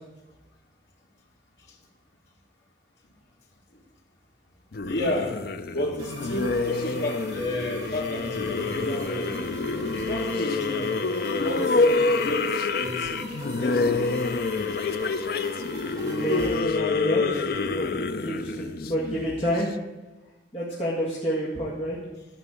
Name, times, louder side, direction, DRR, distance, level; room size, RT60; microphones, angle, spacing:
sound 1, 4.7-19.6, left 3 dB, 55° left, 0.5 m, -27 dB
voice 1, 4.9-5.4 5.7-9.3 9.9-11.0 11.3-11.8 12.2-13.3 13.6-14.1, left 1 dB, 70° left, -2 dB, 2.3 m, -31 dB
sound 2, 6.0-16.6, right 2 dB, 20° right, 2.3 m, -42 dB
voice 2, 16.0-17.4 17.7-19.7 20.5-22.0, equal, 30° left, -7 dB, 2.0 m, -29 dB
13.5 x 5.8 x 8.3 m, 1.1 s
head